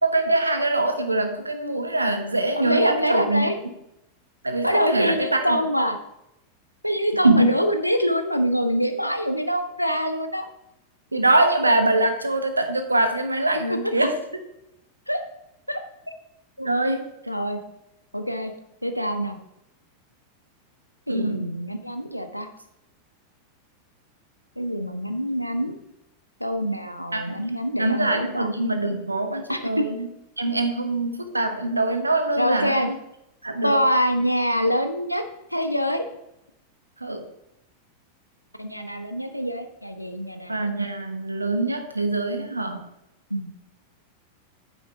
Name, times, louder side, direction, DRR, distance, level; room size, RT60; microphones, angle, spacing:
voice 1, 0.0-3.5 4.4-5.6 7.2-7.5 11.1-14.1 16.6-17.1 21.1-21.6 27.1-27.4 27.8-30.1 30.4-32.8 33.4-33.8 37.0-37.2 40.5-42.8, right 2 dB, 80° right, 7 dB, 1.2 m, -23 dB
voice 2, 2.6-3.6 4.6-6.0 6.8-10.5 15.1-15.2 15.7-15.8 16.6-16.7 17.3-17.6 18.1-18.5 18.8-19.4 21.1-22.5 24.6-25.7 26.4-28.5 29.5-29.9 32.4-32.9 33.6-35.2 35.5-36.0 38.6-40.6 43.3-43.5, equal, 90° left, 8 dB, 0.9 m, -25 dB
9.1 x 8.9 x 3.5 m, 0.86 s
figure-of-eight pair, 90°, 0 cm